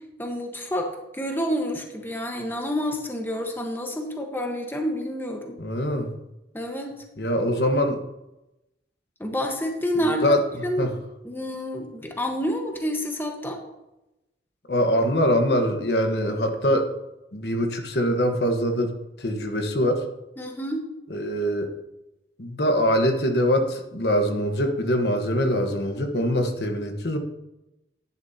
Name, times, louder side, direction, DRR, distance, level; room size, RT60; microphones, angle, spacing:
voice 1, 0.2-5.6 6.5-6.9 9.2-10.4 10.6-10.9 11.2-13.6 20.4-20.8, equal, 10° left, 2 dB, 1.2 m, -28 dB
voice 2, 5.6-6.1 7.2-8.0 10.2-10.4 10.8-10.9 14.7-16.9 17.3-18.9 19.2-20.0 21.1-21.7 22.4-27.2, equal, 65° left, 4 dB, 1.2 m, -23 dB
11.0 x 10.5 x 2.8 m, 0.93 s
head